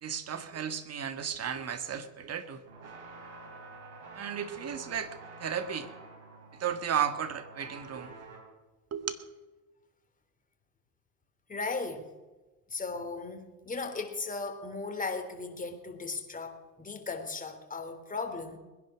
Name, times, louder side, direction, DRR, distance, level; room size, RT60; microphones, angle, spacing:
voice 1, 0.0-2.9 4.1-5.9 6.5-8.3 8.9-9.2, right 8 dB, 40° right, 1.9 m, -34 dB
sound 1, 2.7-8.4, right 3 dB, 90° right, 4.5 m, -48 dB
voice 2, 11.5-12.1 12.7-18.6, left 4 dB, 20° left, 3.2 m, -37 dB
21.5 x 10.5 x 6.4 m
hypercardioid pair, 75°, 40 cm